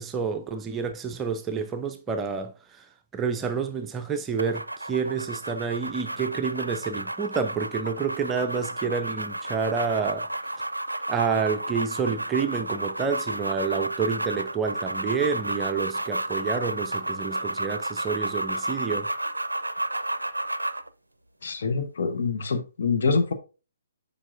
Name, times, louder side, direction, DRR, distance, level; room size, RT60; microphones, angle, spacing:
voice 1, 0.0-2.9 3.1-10.6 11.1-19.1, right 5 dB, 15° right, 0.5 m, -29 dB
sound 1, 4.4-20.9, right 1 dB, 85° right, 0.4 m, -32 dB
voice 2, 21.4-23.3, left 4 dB, 55° left, 1.0 m, -25 dB
7.4 x 5.1 x 2.5 m
figure-of-eight pair, 130°, 0 cm